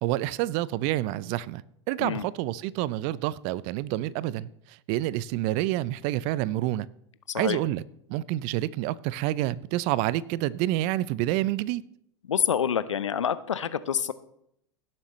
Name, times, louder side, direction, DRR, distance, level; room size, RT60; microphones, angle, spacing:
voice 1, 0.0-1.6 1.9-6.9 7.3-7.8 8.1-11.8, right 15 dB, 50° right, 21 dB, 0.5 m, -28 dB
voice 2, 12.3-14.1, left 8 dB, 85° left, 15 dB, 0.6 m, -27 dB
17.0 x 7.5 x 3.1 m, 0.76 s
hypercardioid pair, 95°, 15 cm